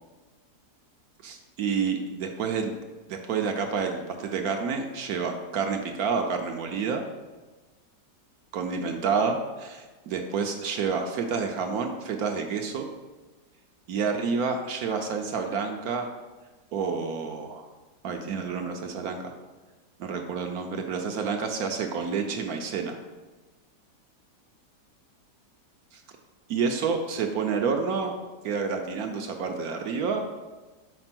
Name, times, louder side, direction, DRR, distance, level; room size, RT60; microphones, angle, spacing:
voice 1, 1.2-2.7 3.1-7.0 8.5-12.9 13.9-16.1 16.7-17.6 18.0-19.4 20.0-23.0 25.9-26.0 26.5-28.1 28.4-30.2, right 5 dB, 70° right, 4 dB, 1.0 m, -29 dB
5.1 x 4.4 x 5.9 m, 1.2 s
omnidirectional pair, 1.9 m